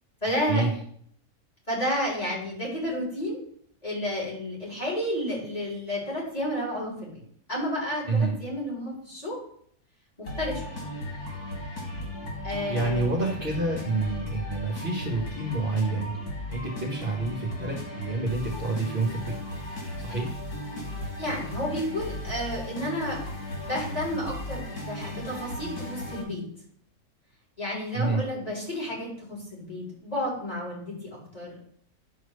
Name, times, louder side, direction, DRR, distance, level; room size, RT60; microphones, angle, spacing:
voice 1, 0.2-0.6 1.7-3.4 3.8-7.2 7.5-9.4 10.2-10.8 12.4-13.1 21.2-23.2 23.6-26.5 27.6-31.6, left 1 dB, 25° left, -5 dB, 4.4 m, -31 dB
sound 1, 10.2-26.2, left 1 dB, 80° left, 3.3 m, -36 dB
voice 2, 12.7-19.4 20.0-20.4 27.9-28.2, right 3 dB, 35° right, -1 dB, 1.8 m, -28 dB
11.0 x 4.7 x 6.8 m, 0.64 s
omnidirectional pair, 1.6 m